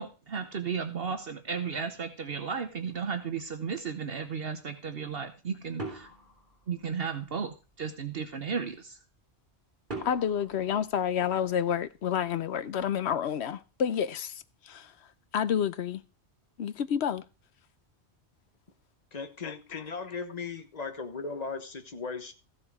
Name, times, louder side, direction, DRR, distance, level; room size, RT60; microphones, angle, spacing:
voice 1, 0.0-6.1 6.7-9.0, right 6 dB, 60° right, 1.1 m, -34 dB
sound 1, 5.8-7.3 9.9-11.7, right 2 dB, 45° right, 4.0 m, -43 dB
voice 2, 10.0-14.9 15.3-16.0 16.6-17.2 19.4-19.8, left 8 dB, 75° left, 1.0 m, -29 dB
voice 3, 19.1-22.3, left 4 dB, 40° left, 1.3 m, -37 dB
15.0 x 7.0 x 4.8 m
omnidirectional pair, 1.1 m